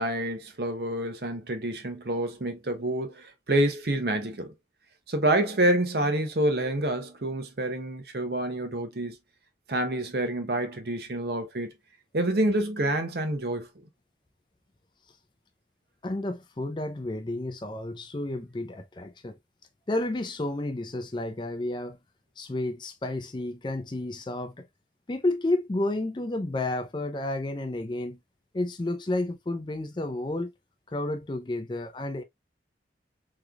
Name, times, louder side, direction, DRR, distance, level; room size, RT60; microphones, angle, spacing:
voice 1, 0.0-4.5 5.1-9.2 9.7-11.7 12.1-13.7, right 1 dB, 60° right, 0.8 m, -27 dB
voice 2, 16.0-19.4 19.9-22.0 22.4-24.6 25.1-28.2 28.5-30.5 30.9-32.2, left 2 dB, 25° left, 0.4 m, -31 dB
3.7 x 3.1 x 2.3 m
head